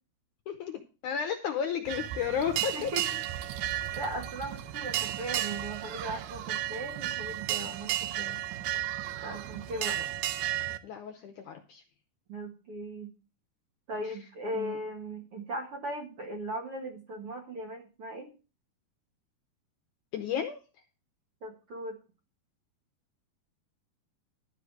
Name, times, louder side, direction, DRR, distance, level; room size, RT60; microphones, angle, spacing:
voice 1, 0.5-2.9 10.8-11.8 14.0-14.1 14.5-14.8 20.1-20.6, left 8 dB, 70° left, 6 dB, 2.0 m, -33 dB
sound 1, 1.8-10.8, right 12 dB, 85° right, 1.7 m, -33 dB
voice 2, 2.7-3.0 3.9-8.4 9.2-10.0 12.3-13.1 13.9-18.3 21.4-22.0, right 1 dB, 50° right, 1 dB, 2.1 m, -38 dB
12.5 x 4.9 x 7.7 m, 0.33 s
omnidirectional pair, 4.3 m